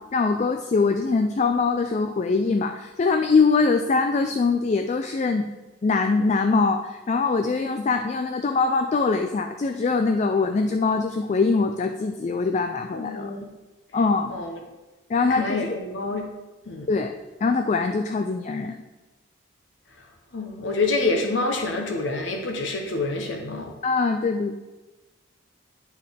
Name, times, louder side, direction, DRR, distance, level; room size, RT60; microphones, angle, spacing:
voice 1, 0.0-5.5 5.8-13.3 13.9-14.4 15.1-15.6 16.9-17.1 17.4-18.8 23.8-24.6, left 4 dB, 35° left, 6 dB, 0.3 m, -23 dB
voice 2, 12.9-13.5 14.3-14.6 15.3-16.2 16.7-16.9 20.3-23.7, left 3 dB, 70° left, 2 dB, 0.9 m, -27 dB
11.0 x 4.6 x 3.5 m, 1.1 s
head